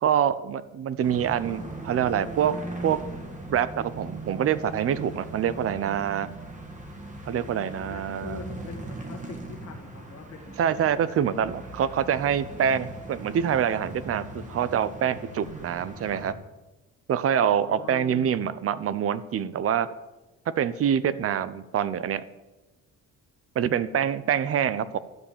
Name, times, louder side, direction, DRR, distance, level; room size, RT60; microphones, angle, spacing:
voice 1, 0.0-2.5 2.8-3.0 3.5-6.3 7.3-8.4 10.6-16.3 17.1-19.9 20.6-22.2 23.6-25.0, right 9 dB, 45° right, 16 dB, 0.6 m, -25 dB
sound 1, 1.0-16.3, right 2 dB, 25° right, 1.8 m, -40 dB
voice 2, 7.3-10.6 10.9-11.5 17.3-18.5, left 5 dB, 50° left, 2 dB, 1.9 m, -44 dB
12.5 x 5.4 x 8.5 m, 1.1 s
cardioid pair, 145°, 32 cm